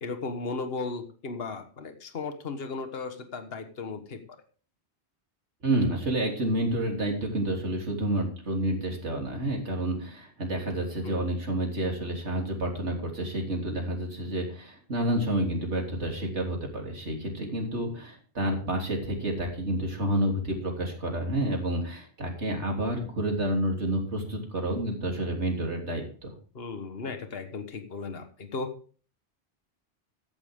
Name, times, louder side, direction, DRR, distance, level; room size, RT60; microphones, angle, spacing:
voice 1, 0.0-4.2 11.0-11.3 26.5-28.7, left 4 dB, 60° left, 7 dB, 1.6 m, -36 dB
voice 2, 5.6-26.3, right 1 dB, 85° right, 1 dB, 3.6 m, -29 dB
14.5 x 11.0 x 3.7 m, 0.40 s
omnidirectional pair, 1.2 m